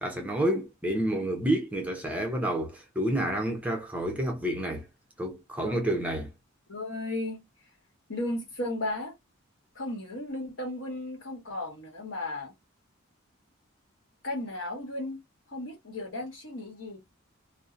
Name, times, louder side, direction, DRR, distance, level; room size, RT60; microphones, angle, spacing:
voice 1, 0.0-4.9 5.2-6.3, right 1 dB, 5° right, 0.5 m, -29 dB
voice 2, 6.7-7.4 8.1-9.1 9.7-12.5 14.2-15.2 15.5-17.0, left 1 dB, 70° left, 1.1 m, -35 dB
2.6 x 2.0 x 2.5 m
head